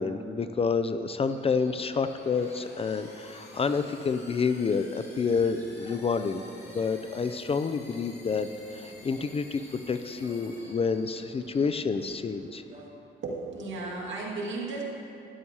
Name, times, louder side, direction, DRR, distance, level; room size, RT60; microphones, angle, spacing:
voice 1, 0.0-6.4 6.7-8.5 8.7-12.6, left 5 dB, 30° left, 10 dB, 0.4 m, -29 dB
sound 1, 1.3-11.7, equal, 10° left, 1.5 m, -56 dB
sound 2, 1.6-11.4, left 2 dB, 55° left, 2.5 m, -52 dB
sound 3, 5.3-12.9, right 2 dB, 30° right, 1.4 m, -53 dB
voice 2, 13.2-14.8, right 3 dB, 70° right, -3 dB, 2.1 m, -34 dB
12.5 x 11.0 x 2.8 m, 2.8 s
cardioid pair, 90°, 20 cm